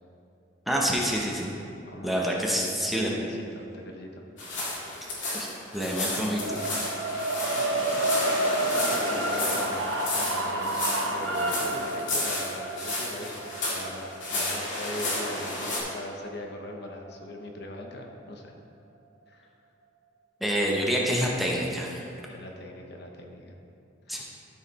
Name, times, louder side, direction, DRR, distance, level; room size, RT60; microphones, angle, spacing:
voice 1, 0.7-1.5 2.0-3.1 5.3-6.9 20.4-22.0 24.1-24.2, equal, ahead, -3 dB, 0.9 m, -27 dB
voice 2, 1.9-4.2 7.6-7.8 8.7-10.7 11.0-18.5 19.3-19.5 22.3-23.5 24.1-24.2, left 1 dB, 60° left, 2 dB, 0.9 m, -41 dB
sound 1, 4.4-15.8, left 2 dB, 75° left, 2.1 m, -32 dB
sound 2, 6.3-16.5, right 2 dB, 85° right, 0.8 m, -30 dB
12.5 x 4.9 x 4.1 m, 2.7 s
head